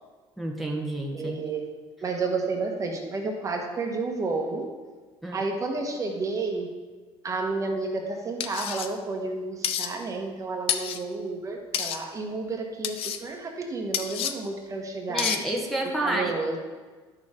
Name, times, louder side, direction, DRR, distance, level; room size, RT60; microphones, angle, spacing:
voice 1, 0.4-1.4 5.2-5.4 15.1-16.3, right 1 dB, ahead, -2 dB, 1.2 m, -29 dB
voice 2, 1.1-1.7 2.0-4.6 5.3-6.7 7.2-15.3 16.0-16.6, right 3 dB, 30° right, 2 dB, 1.3 m, -31 dB
sound 1, 8.4-8.9 9.6-9.9 10.7-11.0 11.7-12.0 12.8-13.2 13.9-14.3 15.2-15.4, left 9 dB, 60° left, 0.6 m, -29 dB
10.5 x 6.4 x 3.7 m, 1.4 s
cardioid pair, 110°, 11 cm